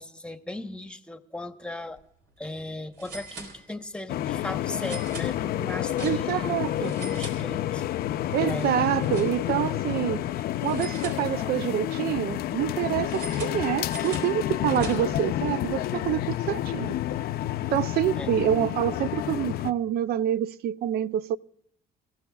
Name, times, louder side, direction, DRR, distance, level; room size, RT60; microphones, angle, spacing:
voice 1, 0.0-2.0 2.4-8.2 8.4-8.8 18.2-18.3, left 1 dB, 5° left, 1.0 m, -38 dB
sound 1, 1.8-2.0 2.3-2.4 3.0-4.0 4.8-6.5 6.8-8.0 8.3-9.7 10.6-11.7 13.1-15.3, right 3 dB, 80° right, 4.1 m, -42 dB
sound 2, 4.1-19.7, left 13 dB, 65° left, 0.5 m, -29 dB
voice 2, 6.0-6.9 8.3-10.3 10.6-16.9 17.7-21.4, right 12 dB, 65° right, 0.5 m, -27 dB
28.0 x 15.5 x 2.3 m
cardioid pair, 110°, 17 cm